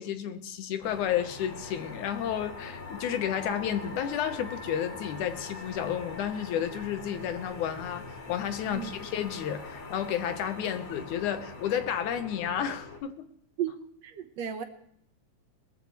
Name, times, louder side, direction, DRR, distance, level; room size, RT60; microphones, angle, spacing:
voice 1, 0.0-13.2, left 9 dB, 85° left, 2.5 m, -31 dB
sound 1, 0.8-13.0, left 3 dB, 60° left, 3.5 m, -43 dB
voice 2, 14.0-14.6, right 9 dB, 65° right, 2.2 m, -33 dB
21.0 x 14.0 x 3.2 m
omnidirectional pair, 3.5 m